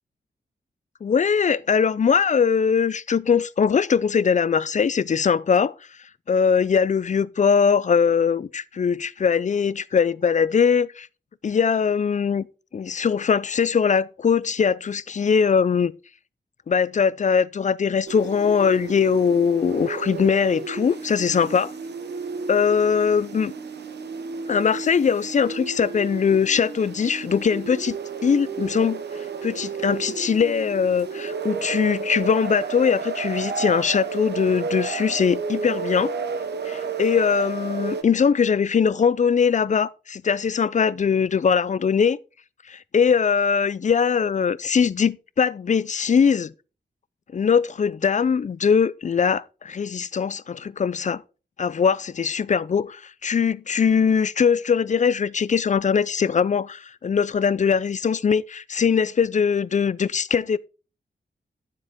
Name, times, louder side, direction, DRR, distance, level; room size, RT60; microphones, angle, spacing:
voice 1, 1.0-5.7 6.3-11.1 11.4-12.5 12.7-15.9 16.7-21.7 22.5-23.5 24.5-29.0 29.4-36.1 36.6-42.2 42.7-46.5 47.3-51.2 51.6-60.6, left 6 dB, 45° left, 0.5 m, -21 dB
sound 1, 18.1-38.0, right 5 dB, 75° right, 1.1 m, -32 dB
9.5 x 7.5 x 3.7 m
cardioid pair, 70°, 18 cm